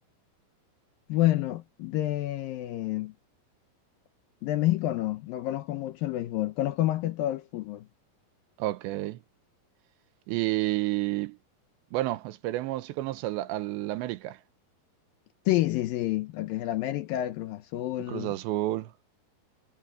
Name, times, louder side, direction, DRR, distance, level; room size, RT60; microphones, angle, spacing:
voice 1, 1.1-3.1 4.4-7.9 15.5-18.3, left 15 dB, 80° left, 2.1 m, -28 dB
voice 2, 8.6-9.2 10.3-11.4 11.9-14.4 18.1-18.9, right 17 dB, 90° right, 3.1 m, -30 dB
omnidirectional pair, 5.1 m